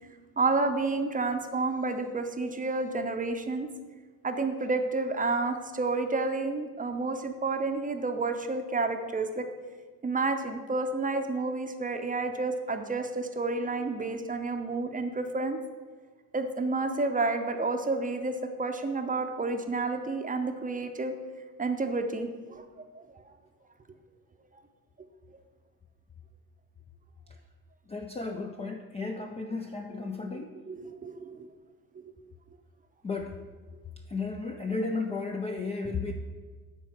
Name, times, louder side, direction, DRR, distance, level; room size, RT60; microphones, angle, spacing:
voice 1, 0.4-3.7 4.2-9.5 10.0-15.6 16.3-21.1 21.6-22.6 22.9-23.0 30.7-31.5, right 3 dB, 15° right, 6 dB, 0.7 m, -30 dB
voice 2, 27.9-30.5 33.0-33.4 34.1-36.1, left 3 dB, 15° left, 3 dB, 0.4 m, -34 dB
9.0 x 4.2 x 5.9 m, 1.4 s
figure-of-eight pair, 45°, 48 cm